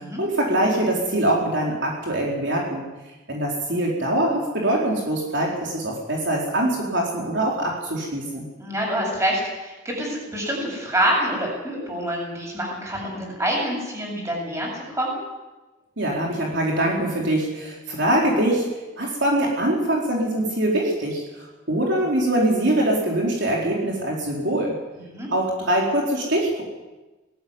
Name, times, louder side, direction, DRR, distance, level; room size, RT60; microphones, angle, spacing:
voice 1, 0.0-2.9 3.3-8.5 16.0-18.7 19.0-24.7 25.3-26.6, right 1 dB, 60° right, -2 dB, 4.3 m, -23 dB
voice 2, 8.6-15.2 25.1-25.3, right 1 dB, 15° right, -1 dB, 7.7 m, -26 dB
19.0 x 15.0 x 9.8 m, 1.1 s
head